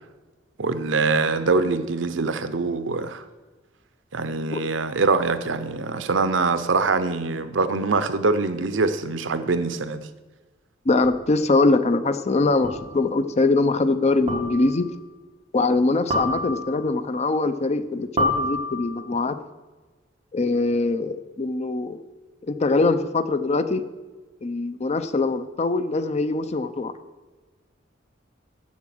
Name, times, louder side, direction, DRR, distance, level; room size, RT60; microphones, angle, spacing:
voice 1, 0.6-3.2 4.1-10.1, right 3 dB, 70° right, 0.7 m, -23 dB
voice 2, 10.9-14.9 15.5-19.4 20.3-22.0 22.4-23.8 24.4-26.9, left 3 dB, 35° left, 0.5 m, -22 dB
sound 1, 11.0-11.1 12.6-13.0 14.3-14.8 16.1-16.9 18.2-19.1, left 1 dB, 35° right, 2.1 m, -27 dB
7.3 x 7.2 x 7.7 m
head